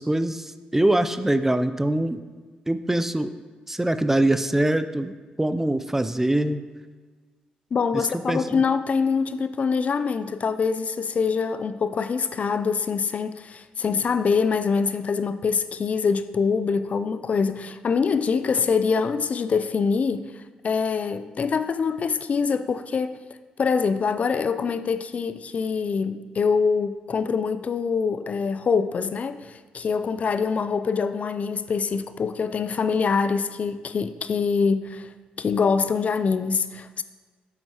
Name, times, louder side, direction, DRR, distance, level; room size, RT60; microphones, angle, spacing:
voice 1, 0.0-2.2 2.7-3.3 3.7-5.1 5.4-6.6 7.9-8.6, right 1 dB, 10° right, 11 dB, 0.4 m, -23 dB
voice 2, 7.7-20.2 20.6-23.2 23.6-35.1 35.4-37.0, left 5 dB, 50° left, 12 dB, 0.4 m, -24 dB
7.9 x 7.3 x 2.9 m, 1.4 s
supercardioid pair, 55°, 3 cm